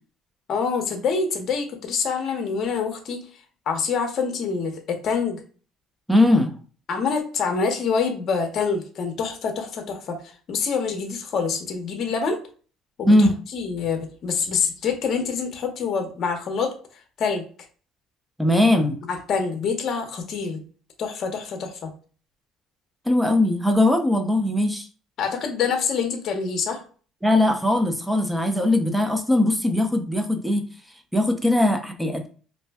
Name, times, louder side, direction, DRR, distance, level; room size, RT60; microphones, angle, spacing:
voice 1, 0.5-3.2 3.7-5.4 6.9-10.2 10.5-12.4 13.0-13.1 13.5-16.7 17.2-17.4 19.1-20.6 21.0-21.9 25.2-26.8, left 5 dB, 50° left, 5 dB, 0.6 m, -26 dB
voice 2, 6.1-6.5 13.1-13.4 18.4-19.0 23.1-24.8 27.2-30.7 31.1-32.3, left 1 dB, ahead, 4 dB, 0.5 m, -20 dB
2.6 x 2.1 x 3.4 m, 0.40 s
cardioid pair, 135°, 0 cm